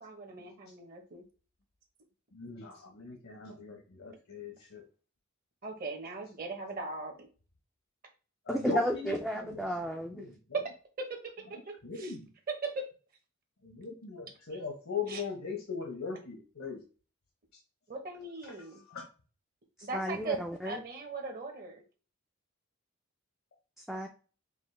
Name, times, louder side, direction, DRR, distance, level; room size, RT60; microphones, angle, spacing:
voice 1, 0.0-1.2 5.6-7.3 11.9-12.1 15.1-15.2 17.9-18.8 19.8-21.8, right 3 dB, 45° right, 3 dB, 0.9 m, -40 dB
voice 2, 2.3-4.8 8.5-9.2 9.5-9.6 10.1-10.3 11.8-12.2 13.6-16.8 18.8-19.0, left 5 dB, 75° left, 2 dB, 0.9 m, -39 dB
voice 3, 8.5-10.3 19.8-20.8 23.8-24.1, equal, ahead, 1 dB, 0.3 m, -33 dB
5.0 x 2.1 x 3.2 m, 0.36 s
head